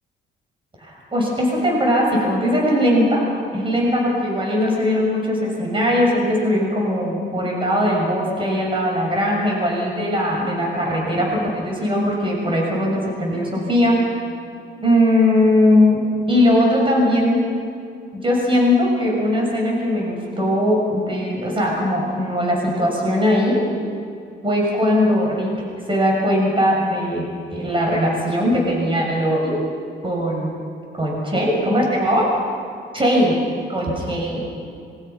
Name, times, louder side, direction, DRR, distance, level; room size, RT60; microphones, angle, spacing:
voice 1, 0.8-3.2 3.5-14.0 14.8-16.0 16.3-17.4 18.1-23.6 24.4-25.5 25.8-29.6 30.0-30.5 31.0-32.3 32.9-33.4 33.7-34.4, left 1 dB, 25° right, -2 dB, 6.7 m, -19 dB
26.0 x 23.5 x 5.8 m, 2.4 s
cardioid pair, 90°, 20 cm